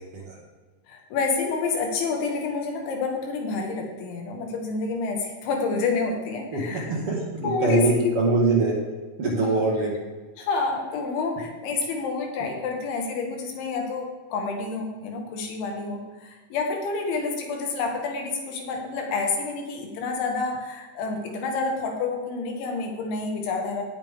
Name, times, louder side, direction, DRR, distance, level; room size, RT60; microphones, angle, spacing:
voice 1, 0.9-6.9 7.4-8.0 9.4-9.6 10.4-23.8, left 4 dB, 75° left, 2 dB, 4.0 m, -28 dB
voice 2, 6.5-8.8 9.2-9.9, right 3 dB, 65° right, -3 dB, 1.4 m, -23 dB
18.0 x 7.5 x 3.7 m, 1.3 s
omnidirectional pair, 5.5 m